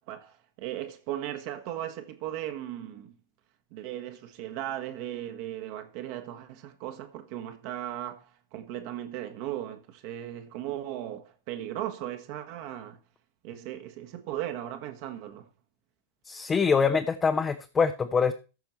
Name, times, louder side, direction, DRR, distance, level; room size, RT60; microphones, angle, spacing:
voice 1, 0.0-3.1 3.7-13.0 13.4-15.5, right 12 dB, 45° right, 1.4 m, -37 dB
voice 2, 16.2-18.3, left 5 dB, 20° left, 0.8 m, -24 dB
14.5 x 5.9 x 4.3 m
figure-of-eight pair, 90°, 0 cm